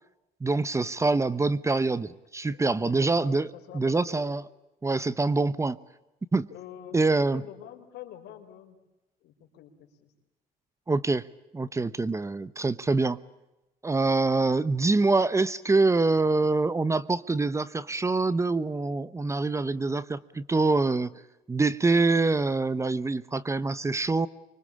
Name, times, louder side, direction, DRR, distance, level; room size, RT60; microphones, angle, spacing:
voice 1, 0.4-4.4 4.8-5.8 6.3-6.5 6.9-7.4 10.9-11.2 11.5-13.2 13.8-21.1 21.5-24.3, right 3 dB, 15° right, 18 dB, 0.9 m, -25 dB
voice 2, 2.5-4.3 6.5-7.0 7.3-8.8 9.2-10.1 11.6-11.8, left 10 dB, 80° left, 4 dB, 4.7 m, -46 dB
25.5 x 24.5 x 8.6 m, 0.98 s
cardioid pair, 110°, 17 cm